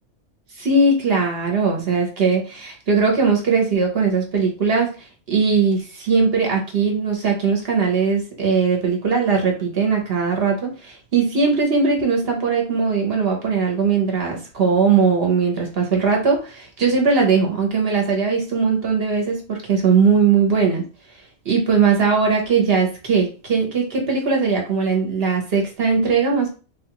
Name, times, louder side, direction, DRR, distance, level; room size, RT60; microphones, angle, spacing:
voice 1, 0.6-5.0 5.3-20.8 21.4-26.5, right 5 dB, 50° right, 1 dB, 0.9 m, -19 dB
3.6 x 2.4 x 2.9 m, 0.35 s
omnidirectional pair, 1.5 m